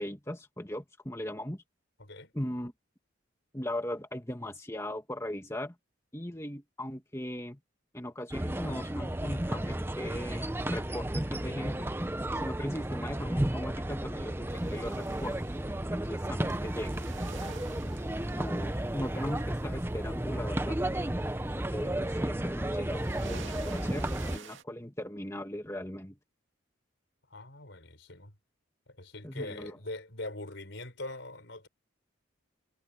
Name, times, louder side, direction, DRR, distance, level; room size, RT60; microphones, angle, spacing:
voice 1, 0.0-1.6 2.3-2.7 3.5-5.7 6.1-7.6 7.9-11.9 12.3-15.4 15.9-17.1 17.7-20.8 21.4-26.2 29.2-29.7, left 1 dB, 15° left, 2.1 m, -39 dB
voice 2, 2.0-2.3 27.3-28.3 28.9-31.7, left 2 dB, 65° left, 4.8 m, -42 dB
sound 1, 8.3-24.4, right 1 dB, 10° right, 0.7 m, -33 dB
sound 2, 14.5-24.6, right 5 dB, 70° right, 2.3 m, -52 dB
head